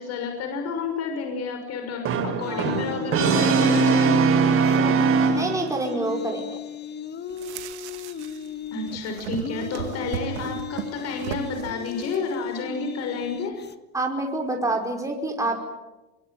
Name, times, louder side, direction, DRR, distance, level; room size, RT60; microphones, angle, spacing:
voice 1, 0.0-4.1 4.7-4.9 8.7-13.6, left 4 dB, 50° left, 4 dB, 6.4 m, -30 dB
Brass instrument, 2.1-5.9, right 5 dB, 40° right, 3.9 m, -21 dB
sound 1, 2.4-13.7, left 7 dB, 30° left, 1.7 m, -36 dB
voice 2, 2.5-2.8 5.3-6.5 13.9-15.6, right 2 dB, 10° right, 2 dB, 5.3 m, -27 dB
sound 2, 7.3-8.5 8.7-12.3, right 10 dB, 85° right, 2.0 m, -36 dB
24.0 x 24.0 x 9.4 m, 1.0 s
supercardioid pair, 110°, 33 cm